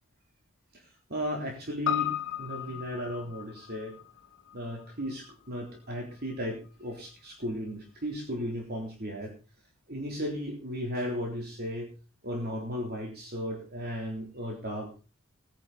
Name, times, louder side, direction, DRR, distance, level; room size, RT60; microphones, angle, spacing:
voice 1, 0.7-4.0 4.5-9.3 9.9-11.9 12.2-15.0, equal, 45° right, 0 dB, 3.6 m, -35 dB
Piano, 1.9-6.4 6.7-6.8, left 11 dB, 60° left, 2.3 m, -36 dB
19.5 x 9.9 x 4.2 m, 0.33 s
head